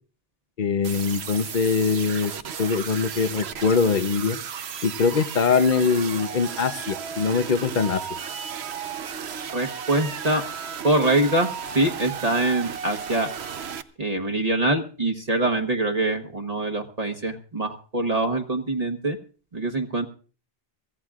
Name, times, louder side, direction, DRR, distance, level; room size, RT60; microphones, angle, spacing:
voice 1, 0.6-2.3 2.6-4.4 4.8-8.2, left 5 dB, 50° left, 8 dB, 0.9 m, -23 dB
sound 1, 0.8-13.8, right 7 dB, 85° right, 1.1 m, -34 dB
voice 2, 9.5-10.4 10.8-13.3 14.0-19.2 19.5-20.1, right 2 dB, 40° right, 4 dB, 1.3 m, -24 dB
24.0 x 16.0 x 2.4 m, 0.39 s
omnidirectional pair, 1.1 m